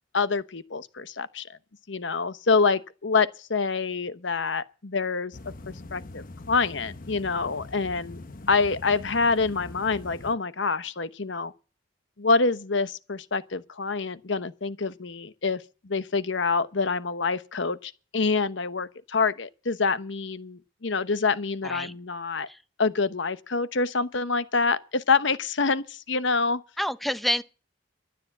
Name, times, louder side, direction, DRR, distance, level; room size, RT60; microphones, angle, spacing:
voice 1, 0.1-1.5 1.9-5.4 5.7-8.2 8.5-11.5 12.2-22.5 22.8-26.6, left 4 dB, 70° left, 1.0 m, -26 dB
sound 1, 5.3-10.3, left 2 dB, 45° left, 0.9 m, -43 dB
voice 2, 26.8-27.4, equal, ahead, 0.7 m, -28 dB
12.5 x 10.5 x 7.2 m
head